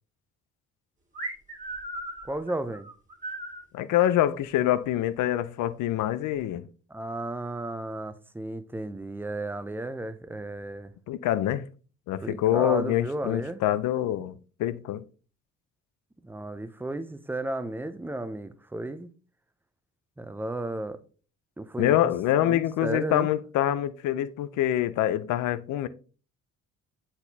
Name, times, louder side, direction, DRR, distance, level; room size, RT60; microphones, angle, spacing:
sound 1, 1.1-3.6, right 1 dB, 25° right, 1.7 m, -37 dB
voice 1, 2.2-2.9 6.9-10.9 12.2-13.6 16.2-19.1 20.2-21.0 21.6-22.1 22.4-23.3, right 2 dB, 5° right, 0.5 m, -33 dB
voice 2, 3.7-6.7 11.1-11.6 12.1-15.0 21.8-25.9, left 12 dB, 80° left, 0.5 m, -25 dB
7.9 x 4.3 x 2.7 m
cardioid pair, 90°, 30 cm